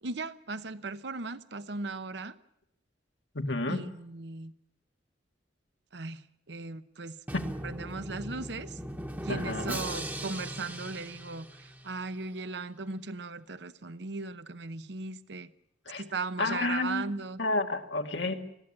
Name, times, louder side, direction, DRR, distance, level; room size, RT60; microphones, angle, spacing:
voice 1, 0.0-2.3 3.7-4.5 5.9-7.1 7.6-8.7 9.2-15.5 16.0-17.4, right 3 dB, 70° right, 0.9 m, -37 dB
voice 2, 3.3-3.9 7.3-7.4 9.3-9.9 15.9-16.0 16.4-18.4, left 2 dB, 90° left, 2.0 m, -31 dB
Drum, 7.3-12.1, right 1 dB, 10° right, 1.2 m, -39 dB
21.0 x 14.5 x 9.9 m
head